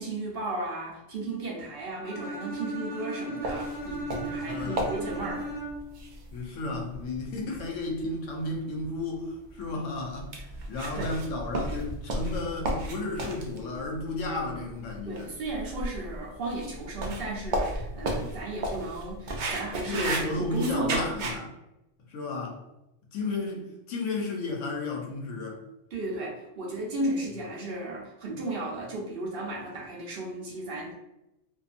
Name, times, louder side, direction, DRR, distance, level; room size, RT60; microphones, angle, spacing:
voice 1, 0.0-5.5 10.9-11.1 15.1-20.1 20.4-21.1 25.9-30.9, right 2 dB, 50° right, -4 dB, 0.8 m, -34 dB
Bowed string instrument, 2.0-6.0, right 2 dB, 25° right, 0.5 m, -36 dB
sound 1, 3.4-21.4, right 1 dB, 75° right, 0.4 m, -35 dB
voice 2, 4.5-4.9 6.3-15.3 19.8-21.5 22.1-22.6 23.1-25.6, left 2 dB, 70° left, 1 dB, 0.9 m, -33 dB
2.7 x 2.4 x 2.4 m, 0.90 s
omnidirectional pair, 1.4 m